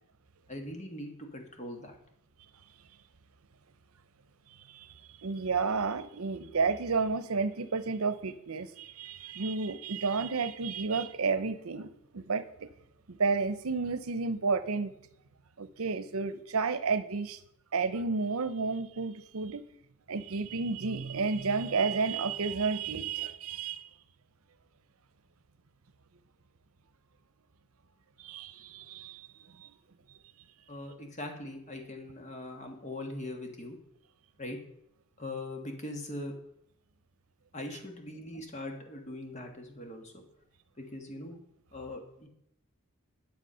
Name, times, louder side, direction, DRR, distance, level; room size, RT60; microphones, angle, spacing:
voice 1, 0.5-2.0 30.7-33.8 34.4-34.6 35.2-36.3 37.5-40.2 40.8-41.4 41.7-42.3, left 1 dB, 35° left, 3 dB, 1.6 m, -41 dB
voice 2, 5.2-12.7 13.1-14.9 15.6-17.4 17.7-19.6 20.1-23.9 28.2-29.3 29.5-29.7, right 4 dB, 85° right, 13 dB, 0.7 m, -31 dB
10.5 x 7.1 x 5.6 m, 0.75 s
head